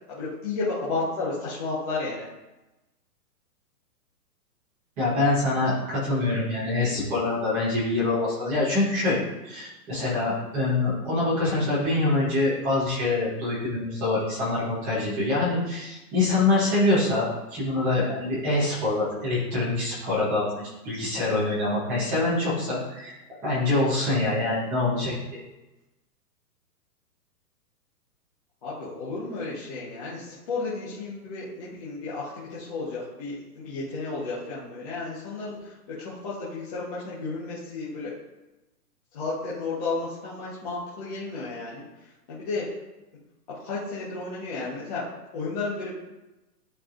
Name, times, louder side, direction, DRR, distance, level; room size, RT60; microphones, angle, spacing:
voice 1, 0.1-2.3 28.6-38.1 39.1-41.8 42.3-42.7 43.5-45.1 45.3-45.9, left 3 dB, 25° left, -8 dB, 1.1 m, -32 dB
voice 2, 5.0-20.4 20.8-23.2 23.4-25.4, left 2 dB, 5° right, -10 dB, 0.7 m, -25 dB
11.5 x 4.7 x 2.5 m, 1.0 s
hypercardioid pair, 170°, 48 cm